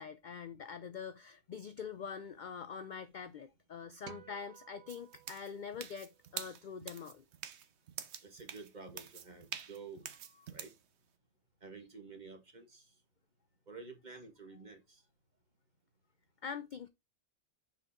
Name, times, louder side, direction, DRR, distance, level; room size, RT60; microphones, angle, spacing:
voice 1, 0.0-7.2 16.4-16.9, left 6 dB, 65° left, 0.5 m, -44 dB
sound 1, 4.1-6.5, right 11 dB, 90° right, 1.1 m, -57 dB
sound 2, 4.9-10.8, right 8 dB, 65° right, 1.0 m, -46 dB
voice 2, 8.2-10.1 10.5-10.7 11.6-12.9 13.7-15.0, right 4 dB, 35° right, 1.6 m, -50 dB
6.2 x 4.7 x 3.6 m
omnidirectional pair, 1.3 m